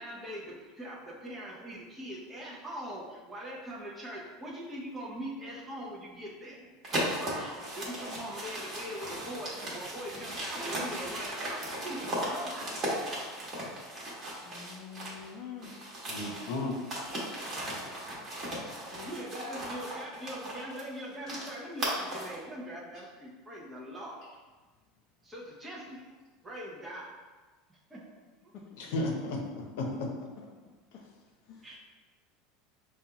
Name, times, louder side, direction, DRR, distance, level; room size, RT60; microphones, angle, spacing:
voice 1, 0.0-12.7 18.8-24.2 25.2-26.1 26.4-27.1 27.7-28.0 31.6-31.8, equal, 10° right, -6 dB, 0.7 m, -42 dB
sound 1, 6.8-15.3 15.6-22.4, right 1 dB, 30° right, 1.1 m, -37 dB
voice 2, 14.4-15.8 18.9-19.1 28.5-29.0 30.9-31.0 31.5-31.7, left 7 dB, 40° left, -3 dB, 0.5 m, -46 dB
voice 3, 16.1-16.8 28.8-29.4 29.8-29.9, left 2 dB, 75° left, 1 dB, 0.8 m, -33 dB
5.4 x 2.3 x 2.8 m, 1.3 s
supercardioid pair, 150°, 0 cm